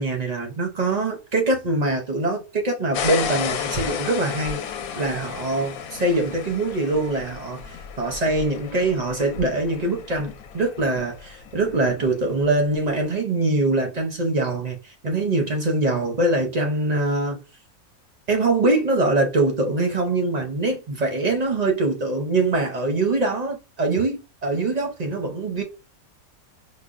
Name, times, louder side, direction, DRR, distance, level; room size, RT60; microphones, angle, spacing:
voice 1, 0.0-4.6 5.0-17.4 18.3-25.6, right 2 dB, 50° right, 0.5 m, -23 dB
sound 1, 2.9-12.6, left 7 dB, 80° left, 1.0 m, -33 dB
4.9 x 2.1 x 2.5 m
omnidirectional pair, 1.5 m